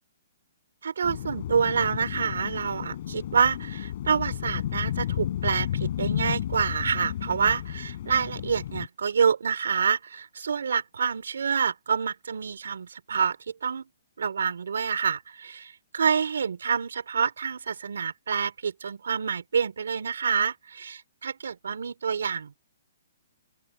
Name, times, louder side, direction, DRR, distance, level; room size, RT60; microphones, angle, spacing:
voice 1, 0.8-13.4 13.6-13.8 14.2-22.5, right 6 dB, 80° right, 4.4 m, -27 dB
sound 1, 1.0-8.9, left 11 dB, 45° left, 7.9 m, -32 dB
open air
hypercardioid pair, 160°, 0 cm